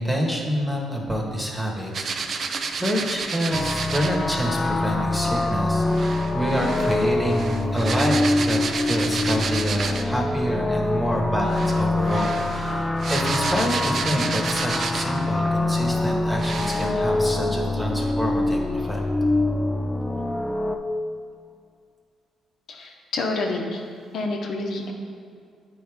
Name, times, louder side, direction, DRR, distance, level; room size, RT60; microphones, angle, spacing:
voice 1, 0.0-2.4 2.8-19.0, equal, 5° right, -1 dB, 1.2 m, -27 dB
sound 1, 1.9-4.2 5.9-10.2 11.4-15.3 15.9-16.0 16.4-16.9, right 5 dB, 55° right, 0.5 m, -30 dB
sound 2, 3.5-20.8, left 2 dB, 10° left, 0.4 m, -24 dB
voice 2, 22.7-23.8 24.1-24.9, left 2 dB, 70° left, 1 dB, 0.8 m, -28 dB
8.8 x 4.6 x 3.5 m, 2.3 s
cardioid pair, 90°, 0 cm